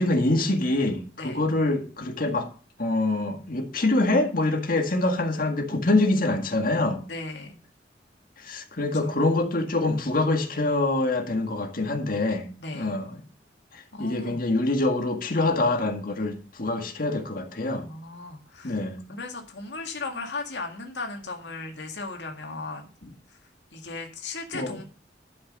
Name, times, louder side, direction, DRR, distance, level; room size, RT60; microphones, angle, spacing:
voice 1, 0.0-2.5 2.8-7.0 8.4-12.5 12.7-13.1 13.7-17.9 18.6-19.0 24.5-24.8, left 2 dB, 50° left, 1.9 m, -25 dB
voice 2, 7.1-7.6 9.0-9.2 12.6-13.0 13.9-14.4 17.8-18.8 19.1-22.9 23.3-23.4 23.7-24.8, left 3 dB, 85° left, 2.0 m, -36 dB
12.0 x 6.1 x 5.4 m
head